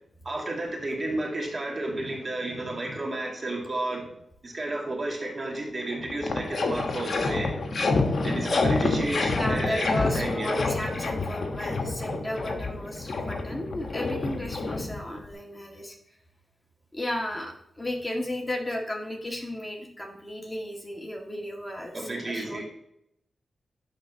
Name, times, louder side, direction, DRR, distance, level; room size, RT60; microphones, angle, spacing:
voice 1, 0.2-4.0 4.4-7.5 8.2-10.6 21.9-22.6, right 2 dB, 40° right, 0 dB, 2.3 m, -32 dB
sound 1, 5.5-5.6 5.9-15.3, left 3 dB, 60° left, 1.2 m, -28 dB
voice 2, 9.3-16.0 16.9-22.6, left 1 dB, 15° left, 0 dB, 1.8 m, -34 dB
11.0 x 4.1 x 2.8 m, 0.77 s
cardioid pair, 65°, 0 cm